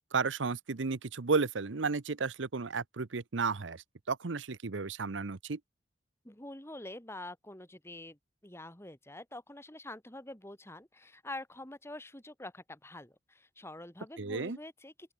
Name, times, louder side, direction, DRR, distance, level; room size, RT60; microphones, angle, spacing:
voice 1, 0.1-5.6 14.2-14.6, right 4 dB, 90° right, 0.8 m, -33 dB
voice 2, 6.2-15.1, left 1 dB, 15° left, 2.6 m, -46 dB
open air
head